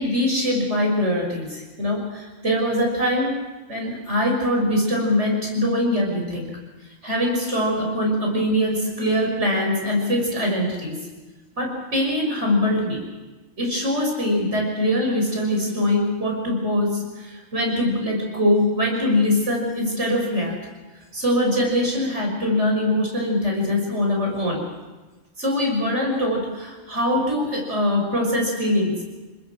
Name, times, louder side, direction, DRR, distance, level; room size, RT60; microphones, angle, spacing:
voice 1, 0.0-3.3 3.7-6.5 7.0-11.0 11.6-13.0 13.6-20.6 21.1-24.6 25.4-29.0, left 1 dB, 60° right, 0 dB, 6.7 m, -22 dB
29.0 x 20.0 x 6.3 m, 1.2 s
omnidirectional pair, 1.3 m